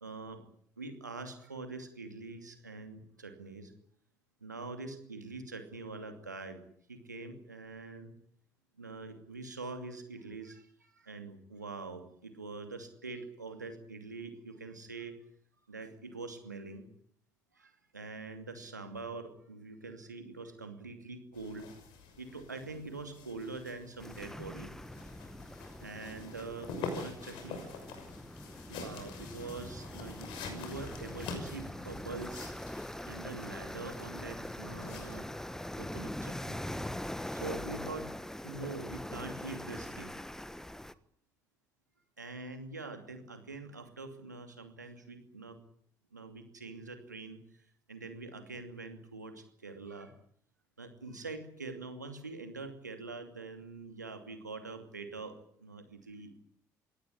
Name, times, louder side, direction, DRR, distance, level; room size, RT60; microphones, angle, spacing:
voice 1, 0.0-0.4 0.8-3.7 4.4-8.1 8.8-15.2 15.7-16.9 17.5-21.7 22.2-24.7 25.8-27.8 28.7-32.5 33.1-36.6 37.3-38.1 38.4-40.1 42.2-45.6 46.1-50.1 50.8-55.4 55.6-56.4, right 3 dB, 90° right, 7 dB, 2.6 m, -44 dB
sound 1, 21.3-35.2, left 4 dB, 65° left, 6.3 m, -46 dB
sound 2, 24.0-40.9, left 1 dB, 5° left, 1.4 m, -43 dB
23.0 x 18.0 x 9.9 m, 0.64 s
figure-of-eight pair, 50°, 9 cm